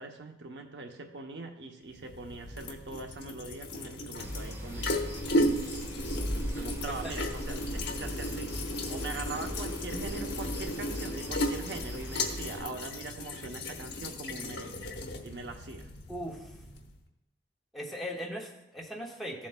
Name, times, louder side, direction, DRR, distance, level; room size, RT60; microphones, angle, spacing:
voice 1, 0.0-5.0 6.5-8.5 8.9-14.9 15.2-15.9, right 3 dB, 70° right, 4 dB, 0.8 m, -42 dB
sound 1, 1.9-17.0, left 1 dB, 70° left, 1.0 m, -35 dB
sound 2, 4.1-12.6, equal, 15° right, 1.2 m, -38 dB
voice 2, 16.1-16.6 17.7-19.5, equal, ahead, -3 dB, 1.3 m, -39 dB
14.5 x 7.4 x 2.2 m, 0.86 s
head